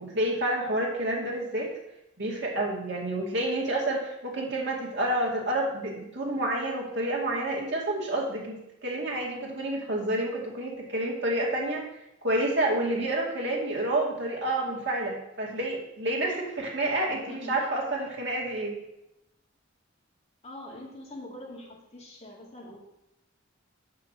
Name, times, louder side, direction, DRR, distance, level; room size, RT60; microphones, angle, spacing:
voice 1, 0.0-1.7 2.2-11.8 12.2-18.8, right 1 dB, 60° right, -2 dB, 2.3 m, -29 dB
voice 2, 17.1-18.0 20.4-22.8, left 1 dB, 30° left, -3 dB, 2.2 m, -44 dB
7.2 x 5.8 x 6.7 m, 0.86 s
head